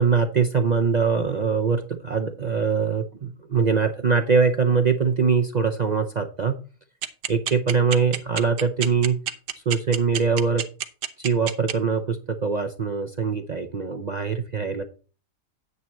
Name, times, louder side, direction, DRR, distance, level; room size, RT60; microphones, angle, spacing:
voice 1, 0.0-6.6 7.3-9.2 9.7-10.7 11.2-14.8, right 5 dB, 50° right, 6 dB, 0.5 m, -22 dB
sound 1, 7.0-11.7, right 10 dB, 85° right, 1.5 m, -27 dB
9.7 x 9.0 x 3.1 m, 0.37 s
omnidirectional pair, 1.7 m